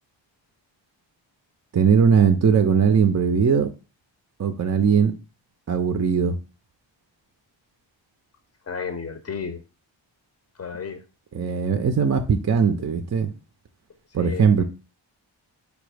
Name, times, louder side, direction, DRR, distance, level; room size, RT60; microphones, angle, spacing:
voice 1, 1.7-3.7 4.4-5.1 5.7-6.3 11.3-13.3 14.1-14.6, right 6 dB, 35° right, 0.5 m, -19 dB
voice 2, 8.7-9.6 10.6-11.0 14.2-14.4, left 6 dB, 35° left, 0.6 m, -32 dB
5.0 x 2.0 x 4.8 m
wide cardioid pair, 75°, 47 cm